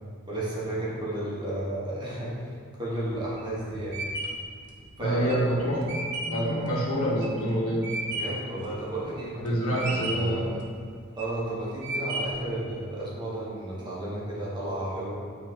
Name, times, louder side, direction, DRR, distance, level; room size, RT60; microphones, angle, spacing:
voice 1, 0.3-2.5 2.8-4.0 5.0-5.4 8.1-10.6 11.2-15.2, right 1 dB, 20° right, -7 dB, 1.2 m, -33 dB
sound 1, 3.0-8.5 8.9-9.5 9.8-10.4 10.9-11.4 11.8-12.5, right 1 dB, 50° right, 0.8 m, -34 dB
voice 2, 5.0-5.8 6.2-7.9 9.4-10.4, equal, 75° left, -5 dB, 1.5 m, -26 dB
8.0 x 3.2 x 4.6 m, 2.1 s
head